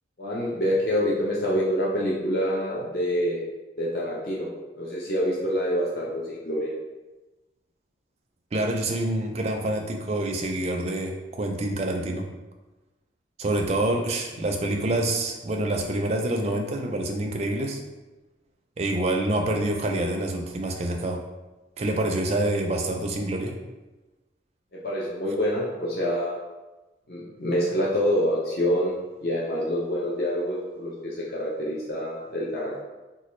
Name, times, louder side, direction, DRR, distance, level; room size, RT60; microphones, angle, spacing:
voice 1, 0.2-3.4 3.8-4.5 4.8-6.7 24.7-26.4 27.1-28.9 29.2-32.8, equal, 50° left, -6 dB, 0.5 m, -26 dB
voice 2, 8.5-12.3 13.4-17.8 18.8-21.2 21.8-23.6, right 1 dB, 35° right, 2 dB, 0.4 m, -27 dB
4.1 x 2.3 x 3.0 m, 1.1 s
head